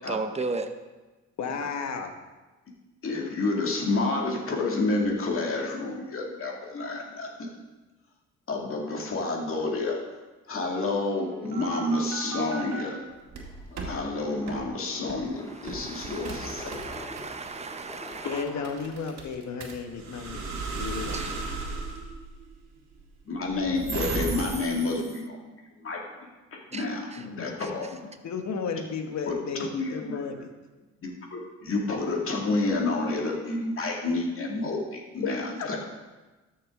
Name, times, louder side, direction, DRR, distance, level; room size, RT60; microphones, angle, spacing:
voice 1, 0.1-0.7 15.5-18.4 21.1-21.7 26.7-26.8 27.1-27.5, right 3 dB, 20° right, 9 dB, 0.8 m, -36 dB
voice 2, 1.4-2.1 18.2-20.5 20.8-21.3 27.2-27.5 28.2-30.5 35.2-35.3 35.6-35.8, left 5 dB, 65° left, 5 dB, 1.3 m, -33 dB
voice 3, 3.0-7.5 8.5-10.0 10.5-13.0 13.7-16.8 23.3-25.5 25.8-26.0 26.5-27.9 29.3-29.4 29.7-30.2 31.0-35.8, left 2 dB, 45° left, 0 dB, 2.2 m, -29 dB
sound 1, 11.1-12.8 13.3-14.0 14.5-14.6 15.1-15.3 15.7-24.7, right 3 dB, 60° right, 2.0 m, -36 dB
sound 2, 12.6-19.2, left 2 dB, 10° left, 1.3 m, -46 dB
13.0 x 6.6 x 3.7 m, 1.2 s
cardioid pair, 90°, 30 cm